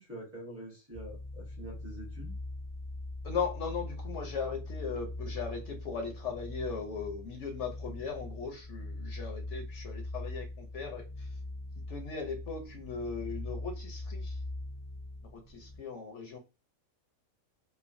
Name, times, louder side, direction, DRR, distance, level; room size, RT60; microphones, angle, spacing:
voice 1, 0.0-2.3, right 1 dB, 15° right, -5 dB, 0.7 m, -46 dB
sound 1, 0.9-15.8, left 2 dB, 20° left, 0.4 m, -41 dB
voice 2, 3.2-11.3 11.9-14.4 15.3-16.4, left 5 dB, 65° left, 3 dB, 0.8 m, -38 dB
3.1 x 2.0 x 2.5 m, 0.29 s
omnidirectional pair, 1.5 m